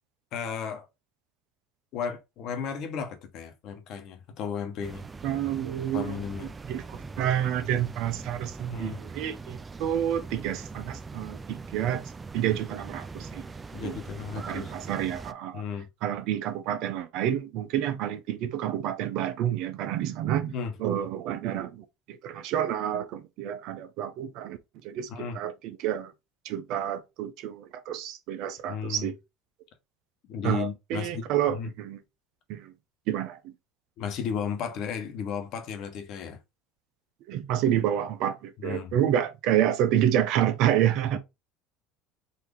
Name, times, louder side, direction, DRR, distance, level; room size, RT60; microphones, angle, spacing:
voice 1, 0.3-0.9 1.9-5.0 5.9-6.5 8.7-9.0 13.7-14.7 15.5-15.9 20.5-20.7 25.1-25.4 28.7-29.1 30.3-31.7 34.0-36.4 38.6-38.9 41.1-41.2, left 7 dB, 60° left, 1.2 m, -34 dB
sound 1, 4.8-15.3, right 4 dB, 20° right, 0.4 m, -41 dB
voice 2, 5.2-12.0 12.3-13.4 13.8-14.0 14.4-15.6 16.0-20.5 20.8-26.1 26.4-29.1 30.4-32.0 32.5-32.7 33.1-33.5 37.3-41.2, right 11 dB, 65° right, 0.7 m, -29 dB
4.1 x 2.8 x 3.4 m
supercardioid pair, 95°, 0 cm